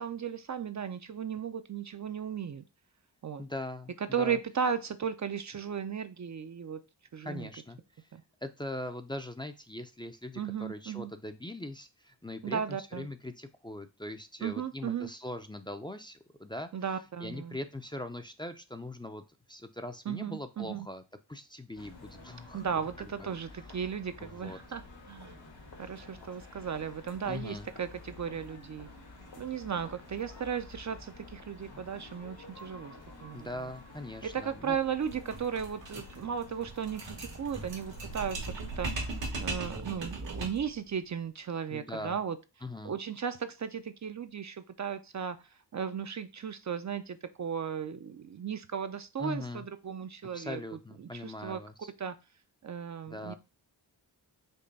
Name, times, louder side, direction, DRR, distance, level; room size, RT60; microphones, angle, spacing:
voice 1, 0.0-2.6 3.2-3.4 4.1-6.8 7.1-7.5 8.1-8.2 10.4-11.1 12.4-13.1 14.4-15.1 16.7-17.6 20.1-20.9 22.5-24.8 25.1-25.4 25.8-28.9 29.4-33.0 33.2-33.5 34.2-39.1 39.4-42.4 42.8-50.6 51.0-51.6 52.0-52.2 52.6-53.4, right 7 dB, 45° right, 10 dB, 0.5 m, -35 dB
voice 2, 3.4-4.4 7.2-8.1 8.4-16.7 17.2-19.2 19.5-21.0 21.3-22.7 23.0-23.3 24.2-24.6 27.2-27.7 33.3-34.8 41.7-42.2 42.6-42.9 49.2-49.6 50.3-51.9 53.1-53.4, left 1 dB, 10° left, 6 dB, 0.5 m, -41 dB
sound 1, 21.8-39.2, left 2 dB, 80° left, 2.2 m, -51 dB
sound 2, 35.0-40.7, right 3 dB, 90° right, 1.7 m, -38 dB
5.3 x 2.2 x 3.9 m, 0.28 s
cardioid pair, 65°, 43 cm